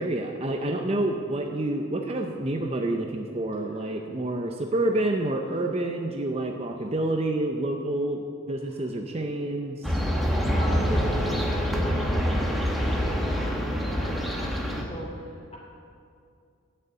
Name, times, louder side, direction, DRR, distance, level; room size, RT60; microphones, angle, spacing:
voice 1, 0.0-10.0, right 1 dB, 30° right, 3 dB, 0.6 m, -28 dB
voice 2, 3.6-4.0 8.6-8.9 10.5-15.6, equal, 30° left, -3 dB, 3.0 m, -38 dB
sound 1, 9.8-14.8, equal, ahead, 1.0 m, -26 dB
12.0 x 6.8 x 8.3 m, 2.4 s
head